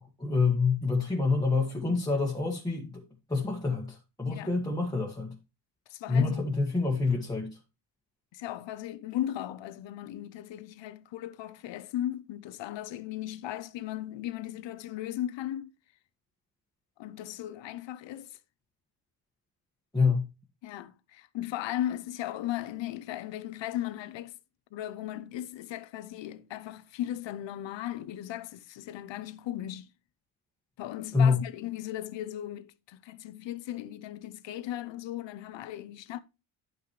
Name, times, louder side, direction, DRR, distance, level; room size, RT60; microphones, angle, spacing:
voice 1, 0.2-3.0 3.3-5.4 6.1-7.6 19.9-20.3 31.1-31.4, left 4 dB, 10° left, 1.7 m, -27 dB
voice 2, 5.9-6.5 8.3-15.7 17.0-18.4 20.6-24.4 24.7-29.9 30.8-36.2, left 12 dB, 65° left, 0.9 m, -37 dB
11.0 x 6.0 x 3.2 m
cardioid pair, 105°, 48 cm